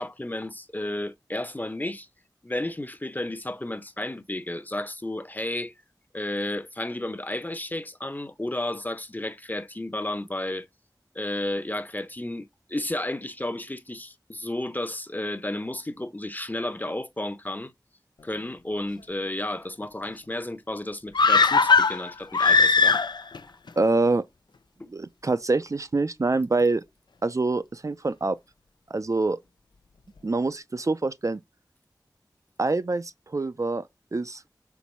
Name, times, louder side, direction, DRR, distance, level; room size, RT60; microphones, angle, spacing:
voice 1, 0.0-2.1 2.4-5.7 6.1-10.7 11.1-17.7 18.2-23.0 24.8-24.9, left 1 dB, 25° left, 0.8 m, -32 dB
sound 1, 21.1-23.4 23.7-23.8, left 4 dB, 80° left, 0.5 m, -19 dB
voice 2, 23.8-24.2 24.9-26.8 27.2-28.4 28.9-29.4 30.2-31.4 32.6-33.9 34.1-34.4, right 3 dB, 45° right, 0.5 m, -25 dB
4.6 x 4.0 x 5.4 m
wide cardioid pair, 55°, 7 cm